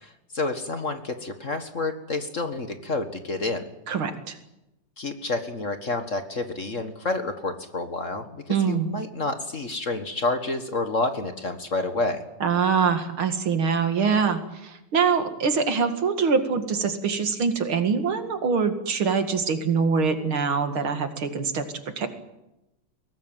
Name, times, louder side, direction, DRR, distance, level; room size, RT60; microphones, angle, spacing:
voice 1, 0.0-3.7 5.0-12.2, left 2 dB, 40° left, 7 dB, 1.8 m, -29 dB
voice 2, 3.9-4.4 8.5-8.9 12.4-21.7 22.0-22.1, right 5 dB, 70° right, 7 dB, 3.0 m, -24 dB
22.5 x 18.5 x 9.2 m, 0.92 s
omnidirectional pair, 2.4 m